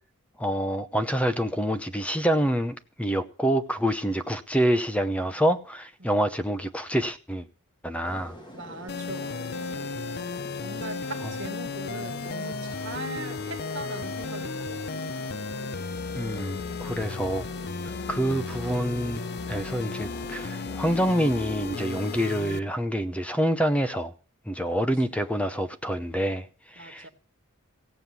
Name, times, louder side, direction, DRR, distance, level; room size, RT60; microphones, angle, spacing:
voice 1, 0.4-7.5 7.8-8.4 16.1-17.4 18.1-19.2 19.5-24.1 24.5-27.1, equal, 5° left, 0.7 m, -27 dB
sound 1, 8.0-22.2, equal, 20° left, 1.5 m, -46 dB
voice 2, 8.5-14.9 21.9-22.1 24.6-24.8 26.8-27.1, right 2 dB, 60° right, 1.8 m, -41 dB
sound 2, 8.9-22.6, left 4 dB, 50° left, 0.6 m, -34 dB
16.5 x 7.8 x 6.9 m
head